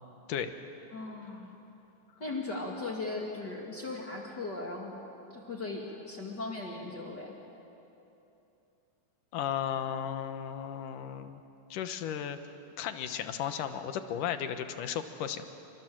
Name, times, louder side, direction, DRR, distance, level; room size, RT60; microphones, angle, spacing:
voice 1, 0.9-1.5 2.2-5.0 5.3-7.3, left 3 dB, 35° left, -1 dB, 2.5 m, -38 dB
voice 2, 9.3-11.4 11.7-12.4 12.8-15.5, left 9 dB, 85° left, 9 dB, 2.7 m, -35 dB
28.0 x 25.5 x 7.7 m, 2.9 s
omnidirectional pair, 3.7 m